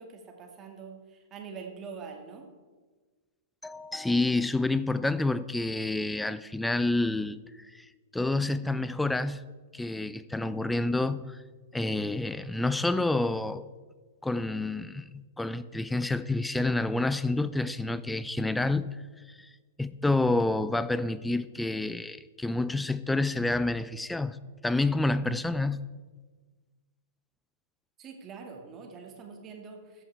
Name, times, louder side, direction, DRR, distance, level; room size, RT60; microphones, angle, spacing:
voice 1, 0.0-2.5 28.0-30.0, right 5 dB, 25° right, 2.1 m, -44 dB
voice 2, 3.6-7.4 7.7-7.9 8.1-9.4 9.7-11.4 11.7-13.7 14.2-18.9 19.3-19.5 19.8-24.4 24.6-25.8, left 2 dB, 5° left, 0.5 m, -28 dB
13.5 x 8.7 x 4.6 m
figure-of-eight pair, 100°, 0 cm